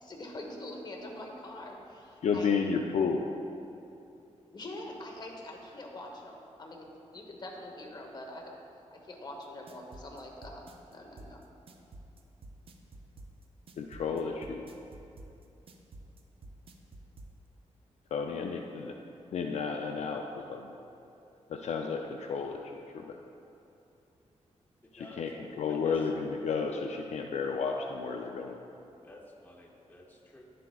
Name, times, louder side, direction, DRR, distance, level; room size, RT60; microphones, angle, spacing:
voice 1, 0.0-2.5 4.5-8.5 8.9-10.6 10.9-11.4, left 1 dB, 35° left, 0 dB, 1.1 m, -44 dB
voice 2, 2.2-3.2 13.8-14.6 18.1-18.9 19.3-20.7 21.5-22.6 22.9-23.0 24.9-25.3 25.6-28.6, left 5 dB, 65° left, 2 dB, 0.4 m, -32 dB
sound 1, 9.4-17.3, right 2 dB, 50° right, 0.6 m, -49 dB
voice 3, 24.8-26.0 29.0-30.4, left 1 dB, 15° left, -1 dB, 0.7 m, -52 dB
11.0 x 7.5 x 2.4 m, 2.7 s
wide cardioid pair, 140°, 12 cm